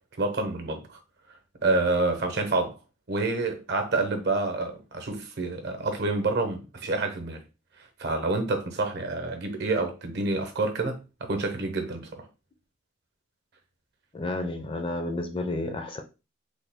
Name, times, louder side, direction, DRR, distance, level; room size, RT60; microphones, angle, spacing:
voice 1, 0.2-1.0 1.6-2.8 3.1-7.4 8.0-12.2, right 3 dB, 60° right, 0.8 m, -28 dB
voice 2, 14.1-16.0, left 2 dB, 25° left, 0.4 m, -31 dB
3.3 x 2.3 x 3.4 m
head